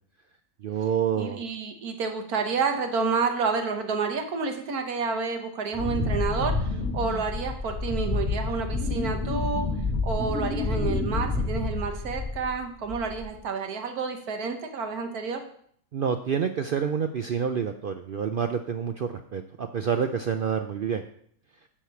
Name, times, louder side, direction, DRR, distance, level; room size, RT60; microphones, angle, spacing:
voice 1, 0.6-1.4 15.9-21.0, right 7 dB, 70° right, 7 dB, 0.5 m, -28 dB
voice 2, 1.2-9.7 10.0-15.4, right 5 dB, 90° right, 5 dB, 1.6 m, -29 dB
Wind, 5.7-12.6 12.9-13.4, left 3 dB, 5° right, 2.1 m, -29 dB
8.9 x 4.9 x 6.9 m, 0.63 s
omnidirectional pair, 1.5 m